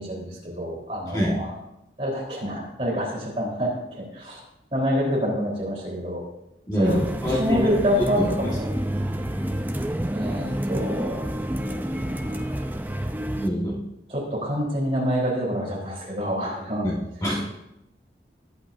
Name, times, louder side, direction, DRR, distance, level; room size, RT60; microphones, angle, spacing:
voice 1, 0.0-1.5 2.0-3.7 4.1-4.4 4.7-6.2 6.8-8.7 10.1-11.7 12.0-12.5 14.1-16.9, equal, 35° right, -4 dB, 3.8 m, -27 dB
voice 2, 1.1-1.4 6.7-7.7 8.1-8.5 13.4-13.8 16.8-17.4, equal, 20° left, -3 dB, 1.5 m, -25 dB
sound 1, 6.8-13.5, right 1 dB, 10° right, 0.5 m, -29 dB
20.0 x 8.2 x 2.7 m, 0.86 s
head